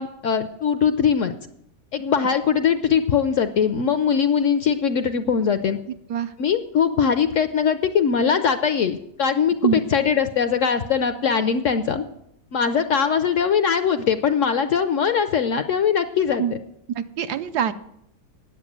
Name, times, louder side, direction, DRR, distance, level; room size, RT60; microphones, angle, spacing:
voice 1, 0.0-1.3 1.9-5.8 6.4-12.0 12.5-16.6, left 7 dB, 65° left, 10 dB, 0.8 m, -21 dB
voice 2, 16.9-17.7, right 8 dB, 80° right, 10 dB, 1.2 m, -24 dB
9.7 x 7.7 x 7.3 m, 0.76 s
omnidirectional pair, 1.8 m